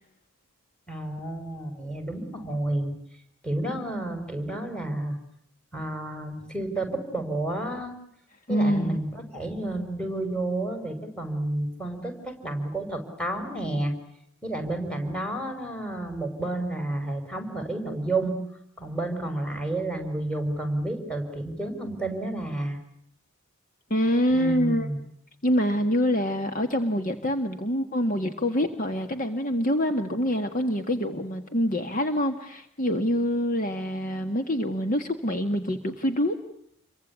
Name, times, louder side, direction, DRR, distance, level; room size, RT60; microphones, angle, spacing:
voice 1, 0.9-2.9 3.4-5.2 5.7-7.9 8.5-13.9 14.4-18.3 18.8-22.8 24.3-25.0, right 2 dB, 5° left, 6 dB, 5.4 m, -30 dB
voice 2, 8.5-9.0 23.9-24.9 25.4-36.4, equal, 35° left, 7 dB, 1.6 m, -25 dB
29.0 x 23.5 x 8.3 m, 0.71 s
head